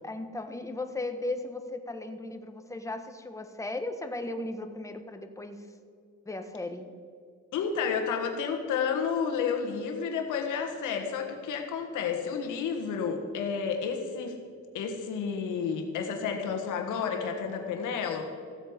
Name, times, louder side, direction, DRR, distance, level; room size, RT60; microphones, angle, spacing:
voice 1, 0.0-5.7 6.3-6.8, left 2 dB, 10° left, 6 dB, 1.1 m, -36 dB
voice 2, 7.5-14.4 14.7-18.2, left 6 dB, 90° left, 4 dB, 1.6 m, -31 dB
15.0 x 7.9 x 5.0 m, 2.2 s
cardioid pair, 90°, 30 cm